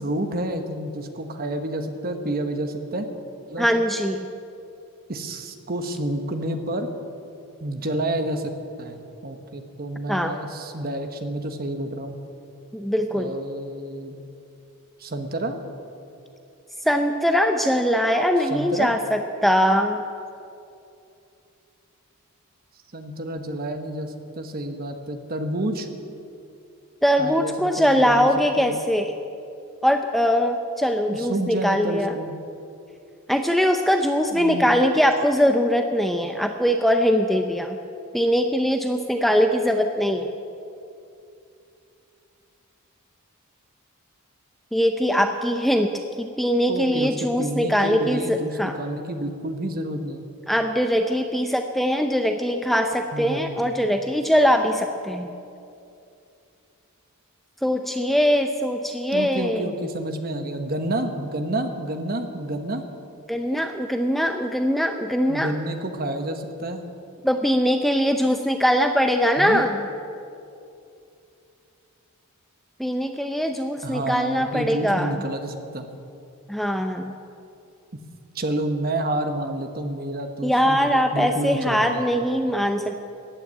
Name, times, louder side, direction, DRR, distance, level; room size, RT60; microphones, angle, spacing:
voice 1, 0.0-3.1 3.5-3.7 5.1-6.9 7.6-8.5 8.8-12.2 13.1-14.2 15.0-15.6 18.5-18.9 22.9-25.9 27.2-28.3 28.6-28.7 31.1-32.3 34.3-34.7 46.7-50.2 53.1-53.7 59.1-62.8 65.3-66.8 69.4-69.6 73.8-75.9 78.3-82.0, right 1 dB, 40° right, 6 dB, 1.2 m, -29 dB
voice 2, 3.6-4.3 10.1-10.4 12.7-13.3 16.8-20.0 27.0-29.2 29.8-32.2 33.3-37.8 38.1-40.3 44.7-45.9 46.2-48.7 50.5-55.3 57.6-59.7 63.3-65.5 67.2-69.8 72.8-75.2 76.5-77.2 80.4-83.0, equal, ahead, 5 dB, 0.5 m, -22 dB
14.5 x 9.3 x 9.2 m, 2.7 s
head